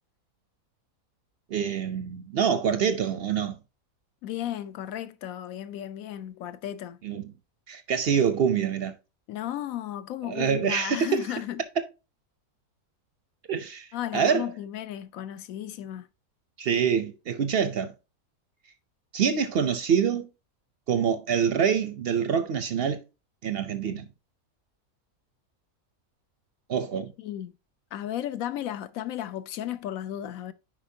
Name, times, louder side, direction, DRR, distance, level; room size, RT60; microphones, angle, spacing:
voice 1, 1.5-3.6 7.0-7.2 7.7-8.9 10.3-11.2 13.5-13.9 14.1-14.4 16.6-17.9 19.1-20.3 20.9-23.0 23.4-24.1 26.7-27.1, right 7 dB, 60° right, 0.6 m, -25 dB
voice 2, 4.2-7.0 9.3-11.6 13.9-16.1 27.2-27.5 27.9-30.5, left 12 dB, 75° left, 1.0 m, -34 dB
8.7 x 5.1 x 2.7 m
omnidirectional pair, 1.5 m